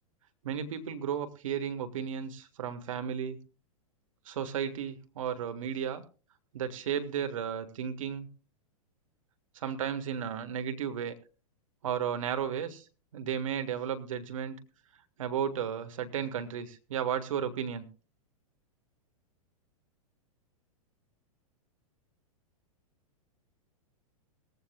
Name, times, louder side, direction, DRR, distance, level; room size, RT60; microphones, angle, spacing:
voice 1, 0.4-3.4 4.2-6.0 6.5-8.3 9.5-11.1 11.8-12.8 13.1-14.6 15.2-17.8, right 8 dB, 60° right, 8 dB, 1.6 m, -34 dB
19.5 x 15.0 x 2.3 m, 0.35 s
figure-of-eight pair, 100°, 19 cm